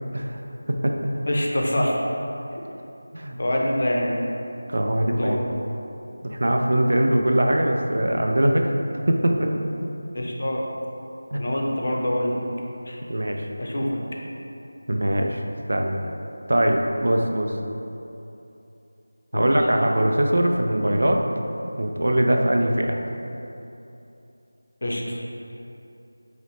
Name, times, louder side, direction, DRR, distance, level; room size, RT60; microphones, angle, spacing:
voice 1, 1.3-2.0 3.4-4.1 5.0-5.4 10.1-10.6 11.3-12.4 12.9-13.0 13.6-13.9 19.3-19.6 24.8-25.2, left 1 dB, 45° left, -2 dB, 0.5 m, -25 dB
voice 2, 4.7-5.4 6.2-8.7 9.1-9.6 11.3-11.4 13.1-13.5 14.9-15.4 15.7-16.1 16.5-17.5 19.3-21.2 21.8-23.0, right 1 dB, 65° right, 2 dB, 0.3 m, -21 dB
4.0 x 3.0 x 2.9 m, 2.8 s
figure-of-eight pair, 175°, 0 cm